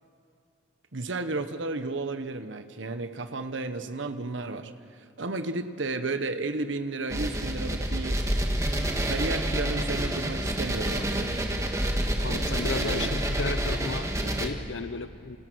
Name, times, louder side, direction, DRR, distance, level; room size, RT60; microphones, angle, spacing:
voice 1, 0.9-8.2 9.0-11.3 12.8-13.1, right 3 dB, 85° right, 9 dB, 1.2 m, -33 dB
sound 1, 7.1-14.5, right 1 dB, 15° right, 1.7 m, -28 dB
voice 2, 12.2-15.4, left 4 dB, 80° left, 10 dB, 0.8 m, -34 dB
29.0 x 27.5 x 6.3 m, 2.5 s
head